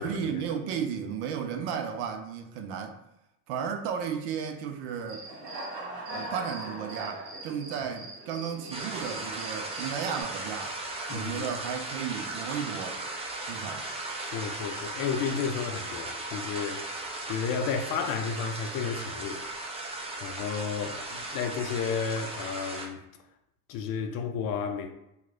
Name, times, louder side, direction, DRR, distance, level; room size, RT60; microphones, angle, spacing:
voice 1, 0.0-3.0 3.5-5.3 6.1-10.8 11.1-13.0 13.5-13.9, right 7 dB, 55° right, 0.6 m, -34 dB
Human voice / Cricket, 5.1-10.2, right 2 dB, 85° right, 0.8 m, -40 dB
sound 1, 8.7-22.9, right 2 dB, 15° right, 0.4 m, -37 dB
voice 2, 11.1-11.5 14.2-16.8 17.3-19.4 20.2-23.0 23.7-24.9, left 6 dB, 45° left, 0.5 m, -32 dB
3.0 x 2.3 x 3.5 m
hypercardioid pair, 75°, 47 cm